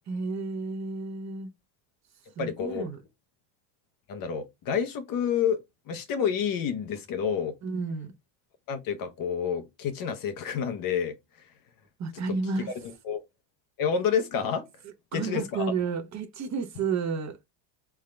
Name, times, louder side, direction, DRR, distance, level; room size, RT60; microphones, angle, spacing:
voice 1, 0.1-1.5 2.4-3.0 7.6-8.1 12.0-12.7 15.1-17.4, right 4 dB, 35° right, 0.9 m, -31 dB
voice 2, 2.4-2.9 4.1-5.6 5.9-7.6 8.7-11.2 12.3-12.4 12.8-13.2 13.8-14.7 15.1-15.7, left 7 dB, 40° left, 0.9 m, -29 dB
3.7 x 3.5 x 3.3 m
cardioid pair, 135°, 50 cm